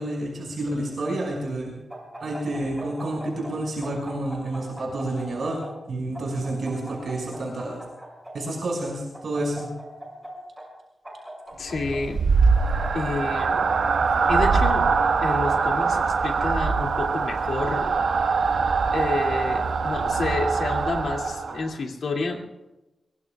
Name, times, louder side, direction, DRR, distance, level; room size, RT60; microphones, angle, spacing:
voice 1, 0.0-1.7 2.2-5.6 5.9-7.8 8.3-9.7, right 1 dB, 60° right, -2 dB, 6.0 m, -29 dB
sound 1, 1.9-3.5 3.8-5.7 6.1-8.3 9.1-10.3 10.6-10.7 11.0-12.0 12.6-13.6 14.2-15.2 16.0-16.9 17.2-18.5 19.1-20.1 20.6-21.5, right 1 dB, 5° right, 6.5 m, -40 dB
voice 2, 11.6-12.5 12.9-13.7 14.3-14.9 15.2-17.9 18.9-22.4, left 3 dB, 70° left, 1 dB, 2.6 m, -29 dB
sound 2, 11.7-21.7, right 5 dB, 80° right, 1.5 m, -23 dB
23.5 x 23.5 x 2.4 m, 1.0 s
wide cardioid pair, 180°, 0 cm